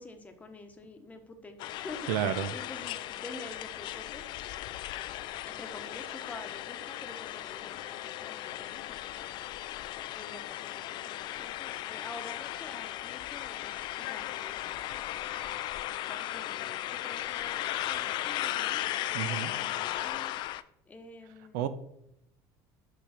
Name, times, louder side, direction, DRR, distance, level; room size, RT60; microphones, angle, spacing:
voice 1, 0.0-2.1 2.5-4.2 5.5-9.4 10.1-14.6 14.9-15.6 16.1-18.8 19.1-20.3 20.9-21.7, left 2 dB, 15° left, 6 dB, 1.0 m, -48 dB
sound 1, 1.6-20.6, left 14 dB, 55° left, 0.4 m, -36 dB
voice 2, 2.1-2.5 19.1-19.5 21.5-21.7, right 10 dB, 90° right, 12 dB, 0.7 m, -30 dB
6.1 x 5.1 x 5.8 m, 0.76 s
cardioid pair, 135°, 9 cm